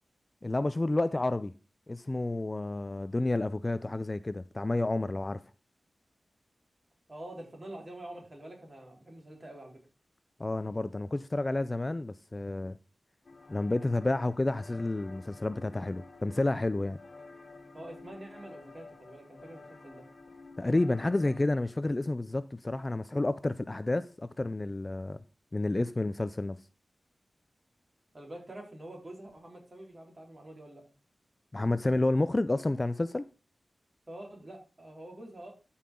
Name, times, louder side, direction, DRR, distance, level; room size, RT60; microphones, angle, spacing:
voice 1, 0.4-1.5 1.9-5.4 10.4-12.8 13.5-17.0 20.6-25.2 25.5-26.6 31.5-33.3, left 2 dB, 25° left, 0.4 m, -30 dB
voice 2, 7.1-9.8 17.7-20.0 28.1-30.8 34.1-35.5, right 1 dB, 30° right, 3.9 m, -46 dB
sound 1, 13.2-21.4, left 3 dB, 55° left, 1.5 m, -51 dB
13.0 x 5.6 x 3.7 m
wide cardioid pair, 90°, 0 cm